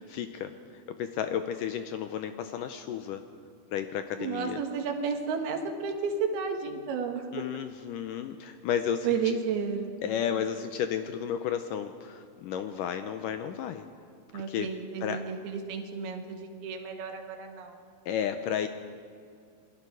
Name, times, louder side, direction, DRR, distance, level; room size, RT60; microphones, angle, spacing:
voice 1, 0.0-3.2 3.7-4.6 7.3-9.1 10.0-13.9 14.3-14.7 15.0-15.2 18.1-18.7, left 9 dB, 80° left, 8 dB, 1.9 m, -32 dB
voice 2, 4.2-7.4 9.0-10.0 14.3-17.8, right 5 dB, 80° right, 3 dB, 3.5 m, -32 dB
27.5 x 20.5 x 4.8 m, 2.3 s
omnidirectional pair, 4.5 m